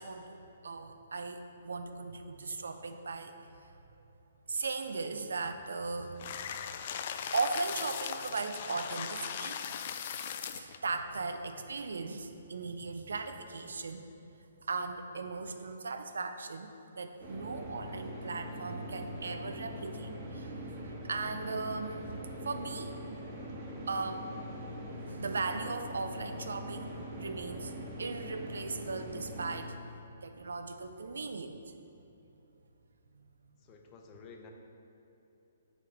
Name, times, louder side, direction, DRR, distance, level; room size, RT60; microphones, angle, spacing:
voice 1, 0.0-3.7 4.5-6.2 7.3-9.6 10.5-14.1 14.6-23.0 23.9-24.3 25.1-29.8 30.2-31.6 33.1-33.3, right 4 dB, 80° right, 7 dB, 0.5 m, -38 dB
sound 1, 6.2-10.8, left 8 dB, 50° left, 0.3 m, -39 dB
sound 2, 17.2-29.6, equal, 30° right, 1.1 m, -43 dB
voice 2, 33.6-34.5, left 5 dB, 30° left, 3 dB, 0.7 m, -52 dB
7.8 x 3.3 x 5.2 m, 3.0 s
hypercardioid pair, 140°, 0 cm